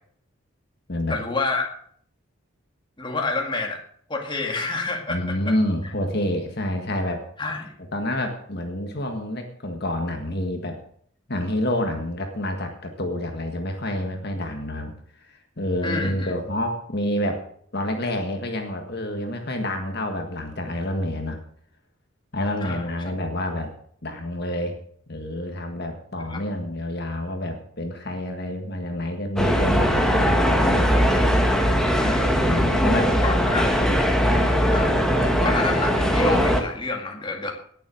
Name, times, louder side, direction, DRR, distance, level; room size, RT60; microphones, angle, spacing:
voice 1, 1.1-1.7 3.0-3.8 4.1-5.5 7.4-7.7 15.8-16.3 22.6-22.8 26.3-26.4 32.0-32.5 33.2-33.8 34.7-34.9 35.2-37.5, left 3 dB, 20° left, 1 dB, 2.1 m, -28 dB
voice 2, 5.1-7.2 7.9-10.8 11.3-14.9 15.2-17.4 17.7-21.4 22.3-23.7 24.0-24.8 25.1-30.9 31.8-33.5 34.3-34.5, left 1 dB, 50° left, 4 dB, 1.7 m, -28 dB
sound 1, 29.4-36.6, equal, 5° left, 1.5 m, -20 dB
18.5 x 7.3 x 6.5 m, 0.63 s
head